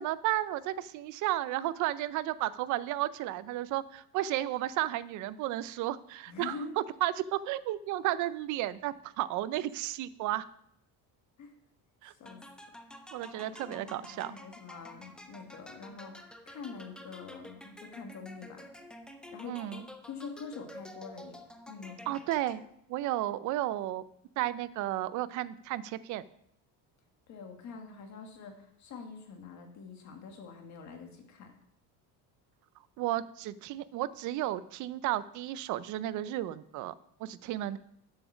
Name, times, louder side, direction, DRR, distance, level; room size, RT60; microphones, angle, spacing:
voice 1, 0.0-10.5 12.0-12.1 13.1-14.3 19.5-19.8 22.1-22.6 22.9-24.0 24.4-26.2 33.0-36.9 37.2-37.8, right 14 dB, 50° right, 16 dB, 0.5 m, -33 dB
voice 2, 6.3-6.7 11.4-11.5 12.1-12.4 13.5-18.7 19.3-21.4 21.7-22.2 27.3-31.5, left 5 dB, 45° left, 4 dB, 1.7 m, -45 dB
sound 1, 12.3-22.9, left 1 dB, ahead, 0.4 m, -50 dB
7.8 x 7.0 x 6.0 m, 0.72 s
cardioid pair, 160°, 38 cm